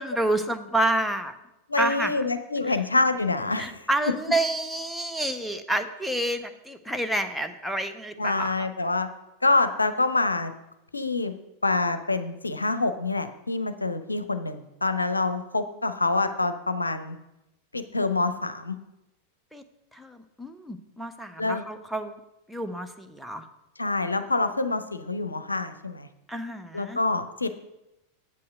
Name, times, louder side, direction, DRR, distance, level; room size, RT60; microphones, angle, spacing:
voice 1, 0.0-1.3 1.8-2.2 2.7-2.8 3.6-8.7 19.5-19.6 19.9-22.2 22.5-23.5 26.3-27.0, right 1 dB, ahead, 6 dB, 0.7 m, -29 dB
voice 2, 1.7-3.7 8.2-9.1 9.4-10.5 10.9-11.3 11.6-17.2 17.7-18.8 21.4-21.6 23.8-26.1 26.7-27.5, left 3 dB, 80° left, 10 dB, 0.6 m, -26 dB
8.0 x 5.6 x 6.6 m, 0.91 s
figure-of-eight pair, 90°, 0 cm